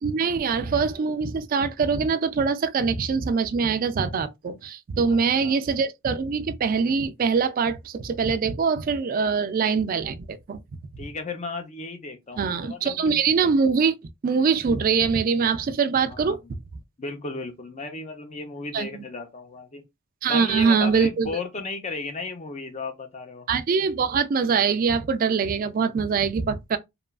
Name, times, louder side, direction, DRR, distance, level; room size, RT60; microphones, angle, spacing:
voice 1, 0.0-10.6 12.4-13.9 14.2-16.4 18.7-19.0 20.2-21.3 23.5-26.8, right 5 dB, 40° right, 0.3 m, -23 dB
voice 2, 5.1-5.6 11.0-13.2 16.1-16.4 17.0-19.8 20.3-23.5, left 3 dB, 30° left, 0.6 m, -35 dB
2.9 x 2.3 x 2.3 m
head